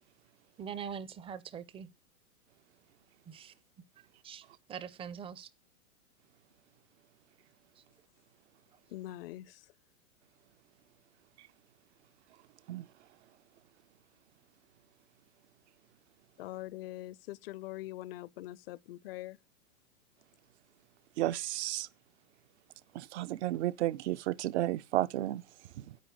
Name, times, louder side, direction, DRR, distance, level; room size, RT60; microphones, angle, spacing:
voice 1, 0.6-1.9 3.3-3.5 4.0-5.5 7.8-7.9, right 7 dB, 15° right, 0.6 m, -43 dB
voice 2, 8.9-9.7 16.4-19.4, left 16 dB, 45° left, 0.6 m, -43 dB
voice 3, 12.3-13.1 21.2-21.9 22.9-26.0, right 15 dB, 50° right, 0.7 m, -34 dB
9.3 x 8.7 x 9.3 m
hypercardioid pair, 130°, 43 cm